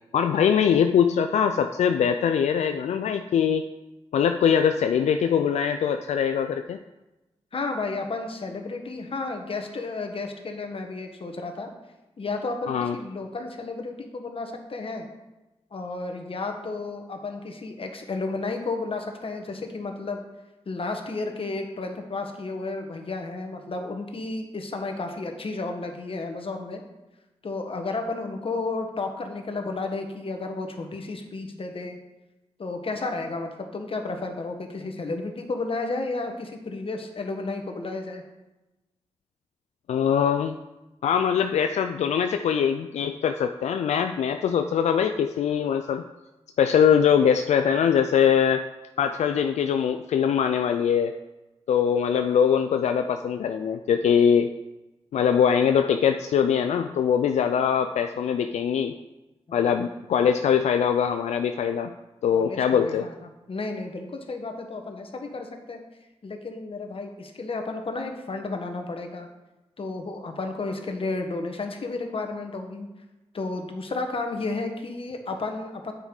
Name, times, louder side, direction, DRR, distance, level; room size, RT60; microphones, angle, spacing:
voice 1, 0.1-3.6 4.1-6.8 12.7-13.0 39.9-40.6 41.0-46.0 46.6-48.6 49.0-51.1 51.7-54.5 55.1-58.9 59.5-61.9 62.2-63.1, left 7 dB, 85° left, 7 dB, 0.4 m, -22 dB
voice 2, 7.5-11.7 12.2-15.1 15.7-20.2 20.7-26.8 27.4-32.0 32.6-38.2 59.5-59.6 62.3-63.1 63.5-65.8 66.2-69.3 69.8-72.9 73.3-75.9, left 3 dB, 55° left, 4 dB, 1.3 m, -32 dB
8.7 x 5.1 x 4.8 m, 1.0 s
cardioid pair, 50°, 11 cm